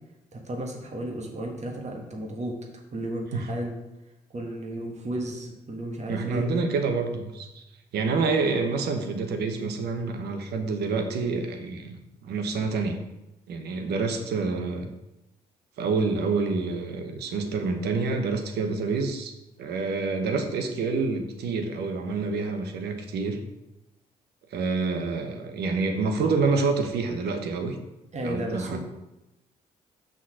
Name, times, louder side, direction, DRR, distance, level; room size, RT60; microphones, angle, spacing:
voice 1, 0.3-2.6 2.9-3.8 4.3-6.5 28.1-28.8, right 1 dB, 40° right, 1 dB, 1.6 m, -33 dB
voice 2, 6.1-7.6 7.9-12.0 12.2-13.0 13.5-14.9 15.8-19.3 19.6-23.4 24.5-27.8 28.2-28.8, right 4 dB, 75° right, 6 dB, 1.0 m, -27 dB
6.0 x 3.9 x 6.1 m, 0.96 s
hypercardioid pair, 50°, 17 cm